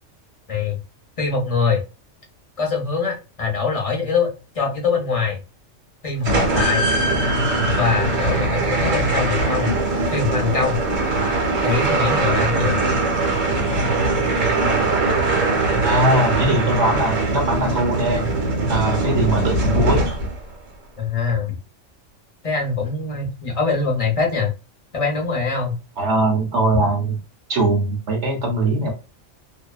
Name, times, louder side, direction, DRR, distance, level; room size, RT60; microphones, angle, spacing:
voice 1, 0.5-0.8 1.2-1.8 2.6-5.4 6.0-6.8 7.6-10.8 11.6-12.8 21.0-21.5 22.4-24.5 24.9-25.8, left 4 dB, 35° left, 0 dB, 0.7 m, -23 dB
sound 1, 6.2-20.5, right 2 dB, 80° right, 1.4 m, -21 dB
voice 2, 15.8-18.3 18.7-20.0 26.0-27.2 27.5-28.9, right 2 dB, 65° right, 2 dB, 1.1 m, -21 dB
2.7 x 2.1 x 2.3 m, 0.29 s
omnidirectional pair, 1.3 m